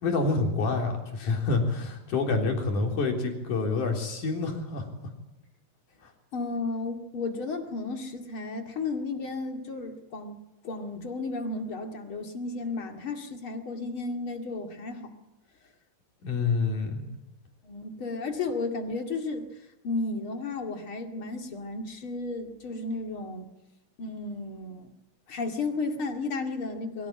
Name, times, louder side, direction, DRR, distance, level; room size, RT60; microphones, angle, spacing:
voice 1, 0.0-4.9 6.0-6.1 16.2-17.0, left 3 dB, 70° left, 2 dB, 5.1 m, -27 dB
voice 2, 6.3-10.4 10.6-15.1 17.6-19.5 19.8-23.5 24.0-24.9 25.3-27.1, left 3 dB, 40° left, 4 dB, 2.8 m, -33 dB
24.0 x 16.5 x 8.9 m, 0.99 s
omnidirectional pair, 3.8 m